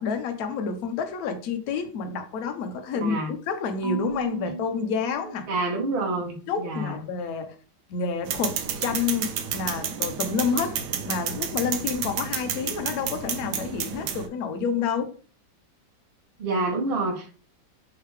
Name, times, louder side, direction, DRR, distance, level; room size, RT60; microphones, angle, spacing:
voice 1, 0.0-5.5 6.5-7.5 7.9-15.1, left 5 dB, 65° left, 0.9 m, -29 dB
voice 2, 2.9-3.3 5.5-7.0 16.4-17.3, right 2 dB, 40° right, 0.9 m, -28 dB
Marimba xylophone / Wood, 3.8-6.0, right 2 dB, 90° right, 1.5 m, -35 dB
sound 1, 8.3-14.3, right 8 dB, 70° right, 1.1 m, -31 dB
3.6 x 3.3 x 3.2 m
omnidirectional pair, 2.1 m